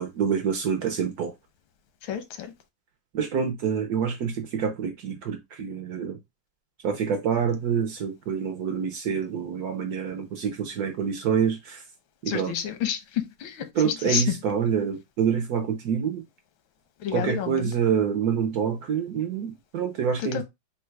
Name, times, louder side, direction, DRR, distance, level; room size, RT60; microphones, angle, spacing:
voice 1, 0.0-1.3 3.1-6.2 6.8-11.8 12.2-12.5 13.8-16.2 17.1-20.4, right 7 dB, 65° right, 0.9 m, -27 dB
voice 2, 2.0-2.5 12.3-14.4 17.0-17.7 20.2-20.4, left 9 dB, 90° left, 1.5 m, -30 dB
3.8 x 2.3 x 4.5 m
omnidirectional pair, 2.1 m